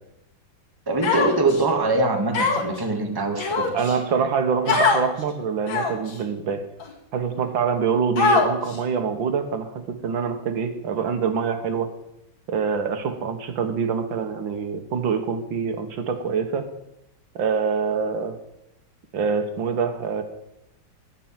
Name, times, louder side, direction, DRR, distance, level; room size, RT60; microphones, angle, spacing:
voice 1, 0.9-3.7, right 2 dB, 10° right, 3 dB, 1.5 m, -23 dB
Human voice, 1.0-1.6 2.3-2.8 3.4-4.0 4.7-5.0 5.7-6.1 6.8-6.9 8.2-8.8, left 4 dB, 75° left, 2.7 m, -21 dB
voice 2, 3.7-6.6 7.1-11.9 12.5-16.6 17.4-18.3 19.1-20.2, right 6 dB, 75° right, 7 dB, 2.0 m, -25 dB
15.0 x 5.9 x 8.9 m, 0.84 s
omnidirectional pair, 2.1 m